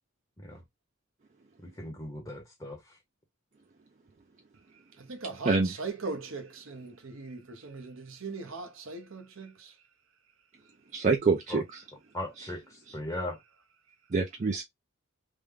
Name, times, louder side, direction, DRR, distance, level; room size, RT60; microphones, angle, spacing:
voice 1, 1.6-3.0 11.5-11.6 12.1-13.4, left 1 dB, 20° left, 0.7 m, -38 dB
voice 2, 5.0-9.7, right 4 dB, 70° right, 0.8 m, -40 dB
voice 3, 10.9-11.8 14.1-14.6, right 4 dB, 35° right, 0.4 m, -26 dB
3.4 x 2.1 x 3.5 m
head